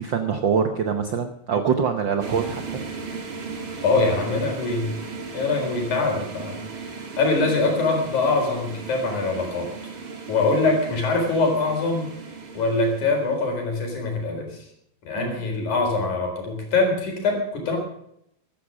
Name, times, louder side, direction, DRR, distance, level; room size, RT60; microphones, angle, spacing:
voice 1, 0.0-2.8 15.2-15.5, right 6 dB, 70° right, 6 dB, 1.1 m, -24 dB
sound 1, 2.2-13.5, right 4 dB, 45° right, 2.9 m, -36 dB
voice 2, 3.8-4.9 5.3-9.7 10.3-12.1 12.5-14.7 15.0-17.8, left 3 dB, 80° left, 2 dB, 5.5 m, -23 dB
15.0 x 13.5 x 6.2 m, 0.74 s
omnidirectional pair, 3.4 m